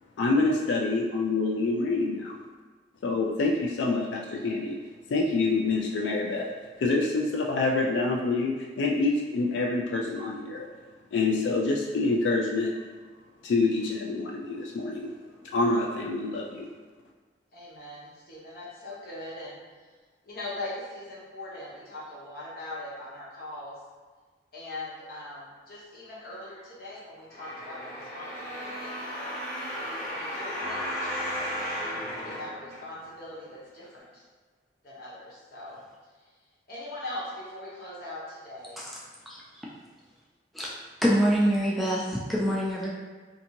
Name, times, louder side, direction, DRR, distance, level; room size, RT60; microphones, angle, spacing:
voice 1, 0.2-2.4 3.0-4.8 5.1-6.5 6.8-10.7 11.1-12.7 13.4-15.1 15.5-16.7, left 3 dB, 85° left, -1 dB, 0.3 m, -26 dB
voice 2, 17.5-19.6 20.2-23.8 24.5-29.6 30.1-31.5 32.2-34.2 34.8-35.8 36.7-38.8, left 1 dB, 55° left, -7 dB, 0.9 m, -41 dB
sound 1, 27.3-33.2 33.8-33.9, equal, 20° left, 0.8 m, -34 dB
voice 3, 41.0-42.9, equal, ahead, -6 dB, 0.3 m, -25 dB
2.6 x 2.5 x 2.8 m, 1.4 s
head